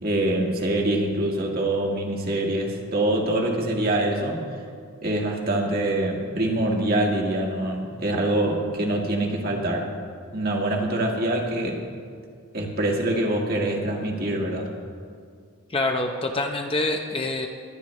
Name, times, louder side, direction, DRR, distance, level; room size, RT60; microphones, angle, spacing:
voice 1, 0.0-4.4 5.0-9.9 10.3-11.8 12.5-14.7, right 1 dB, 45° right, 0 dB, 1.7 m, -25 dB
voice 2, 15.7-17.5, left 2 dB, 25° left, 3 dB, 0.6 m, -26 dB
20.5 x 10.0 x 3.2 m, 2.2 s
head